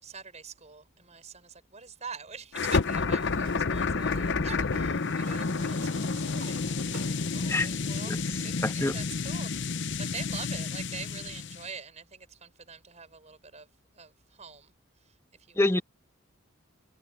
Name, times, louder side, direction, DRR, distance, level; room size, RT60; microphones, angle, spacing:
voice 1, 0.0-13.7 13.9-14.7 15.5-15.6, right 5 dB, 30° right, 6.0 m, -45 dB
sound 1, 2.5-11.7, left 4 dB, 55° left, 0.8 m, -30 dB
Sliding door, 3.3-8.9, right 2 dB, 60° right, 3.5 m, -48 dB
voice 2, 8.6-8.9 15.6-15.8, left 2 dB, 15° left, 1.8 m, -25 dB
head